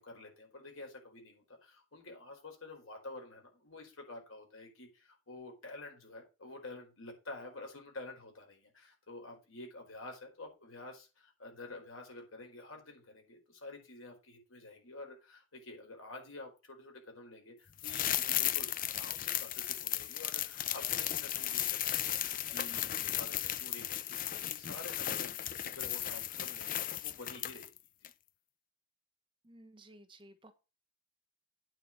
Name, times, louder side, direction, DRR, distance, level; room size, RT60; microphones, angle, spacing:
voice 1, 0.0-27.7 28.0-28.1, left 2 dB, 85° left, 2 dB, 4.6 m, -49 dB
sound 1, 17.8-27.8 28.0-28.1, left 12 dB, 40° left, 0.5 m, -35 dB
voice 2, 29.4-30.5, right 1 dB, 25° right, 8 dB, 1.2 m, -56 dB
9.2 x 5.1 x 7.5 m, 0.29 s
head